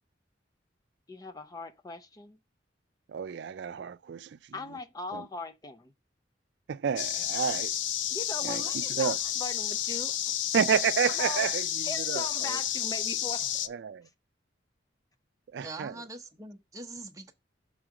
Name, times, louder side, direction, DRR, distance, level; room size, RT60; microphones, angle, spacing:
voice 1, 1.1-2.4 4.5-5.9 8.1-10.3 11.2-11.5 11.8-13.6, left 2 dB, 20° left, 0.5 m, -40 dB
voice 2, 3.1-4.4 5.1-5.3 6.7-7.7 8.4-9.2 10.5-12.6 13.7-14.1 15.5-15.9, right 7 dB, 70° right, 0.3 m, -30 dB
sound 1, 7.0-13.7, left 11 dB, 85° left, 0.5 m, -31 dB
voice 3, 15.6-17.3, right 2 dB, 20° right, 0.8 m, -43 dB
6.3 x 3.7 x 4.8 m
head